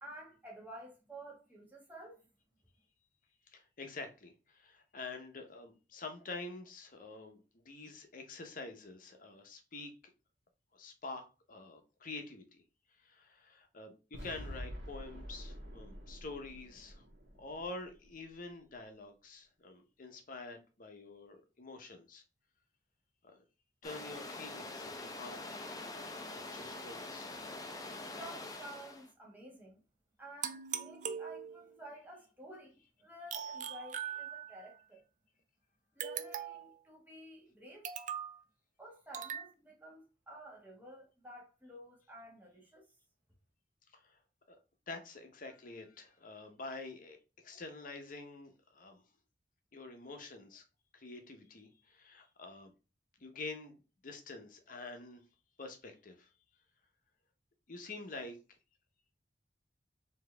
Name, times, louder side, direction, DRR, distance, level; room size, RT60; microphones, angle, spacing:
voice 1, 0.0-2.3 28.0-29.8 30.2-35.0 35.9-37.9 38.8-42.9, right 1 dB, 10° right, 1.3 m, -52 dB
voice 2, 3.5-9.9 10.7-12.6 13.0-17.0 17.4-22.2 23.2-23.4 23.8-27.3 43.9-44.2 44.5-44.6 44.9-47.2 47.4-49.0 49.7-50.6 50.9-52.7 53.2-53.8 54.0-55.2 55.6-56.3 57.7-58.4, left 3 dB, 50° left, 0.8 m, -47 dB
sound 1, 14.1-18.3, equal, 75° right, 1.2 m, -47 dB
sound 2, 23.8-29.1, left 2 dB, 20° left, 0.6 m, -44 dB
sound 3, 30.4-31.8 33.3-34.7 36.0-36.8 37.8-38.4 39.1-39.5, right 8 dB, 45° right, 0.4 m, -41 dB
4.3 x 2.8 x 3.3 m
head